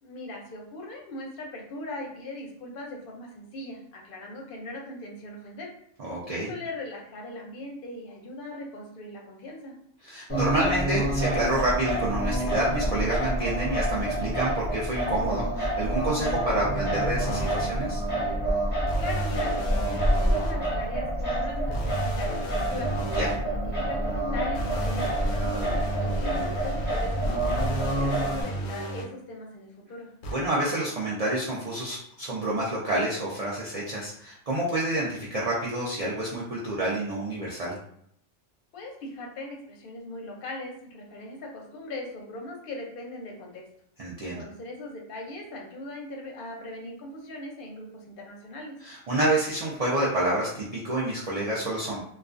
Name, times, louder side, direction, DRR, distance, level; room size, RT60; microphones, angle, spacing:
voice 1, 0.0-5.7 6.5-9.7 19.0-22.9 23.4-30.1 38.7-43.6 44.2-48.7, left 2 dB, 55° left, 1 dB, 0.7 m, -40 dB
voice 2, 6.0-6.5 10.0-18.0 23.2-23.3 30.3-37.7 44.0-44.4 48.8-52.0, right 1 dB, 55° right, -6 dB, 0.4 m, -28 dB
Singing, 10.3-28.4, right 1 dB, 10° left, 0.8 m, -27 dB
sound 1, 17.3-17.7 18.9-20.5 21.7-23.4 24.5-29.0 30.2-30.3, right 2 dB, 90° left, 1.0 m, -34 dB
2.3 x 2.2 x 2.4 m, 0.68 s
omnidirectional pair, 1.3 m